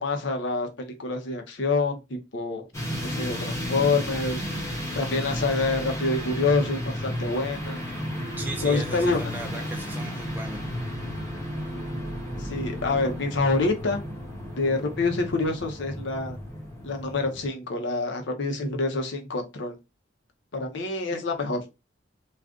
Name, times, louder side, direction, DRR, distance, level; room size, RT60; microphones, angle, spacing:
voice 1, 0.0-2.0 2.3-2.7 3.0-4.4 5.0-7.8 8.6-9.3 12.4-14.0 14.6-16.4 16.8-19.8 20.5-21.6, left 3 dB, 65° left, 4 dB, 0.7 m, -26 dB
sound 1, 2.7-17.5, equal, 15° left, 1.0 m, -33 dB
voice 2, 8.4-10.6, right 2 dB, 10° right, 2 dB, 0.4 m, -37 dB
2.4 x 2.4 x 3.6 m, 0.24 s
head